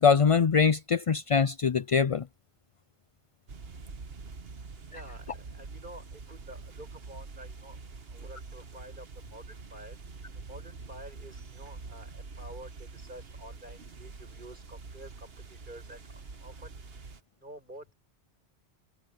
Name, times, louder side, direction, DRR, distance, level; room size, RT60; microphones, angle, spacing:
voice 1, 0.0-2.2, left 6 dB, 45° left, 0.4 m, -23 dB
sound 1, 3.5-17.2, right 4 dB, 65° right, 1.5 m, -45 dB
voice 2, 4.9-7.8 8.1-10.0 10.3-16.8 17.3-17.9, right 1 dB, 50° right, 8.1 m, -49 dB
omnidirectional pair, 1.1 m